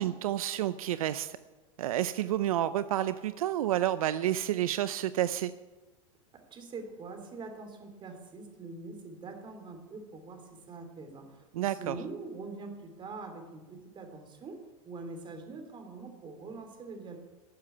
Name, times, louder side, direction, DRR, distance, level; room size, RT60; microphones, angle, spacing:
voice 1, 0.0-1.4 1.8-5.5 11.5-12.0, right 12 dB, 80° right, 13 dB, 0.6 m, -30 dB
voice 2, 6.5-17.2, right 3 dB, 25° right, 5 dB, 3.3 m, -44 dB
13.5 x 7.7 x 9.6 m, 1.2 s
hypercardioid pair, 115°, 18 cm